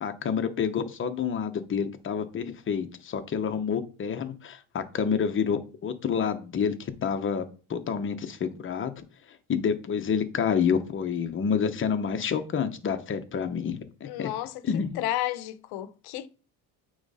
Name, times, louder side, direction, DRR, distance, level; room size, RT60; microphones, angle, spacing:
voice 1, 0.0-7.4 7.7-9.0 9.5-14.3 14.7-15.0, left 7 dB, 35° left, 0.9 m, -28 dB
voice 2, 14.0-14.6 15.0-16.3, left 14 dB, 85° left, 0.8 m, -32 dB
8.6 x 3.2 x 4.1 m
cardioid pair, 135°, 37 cm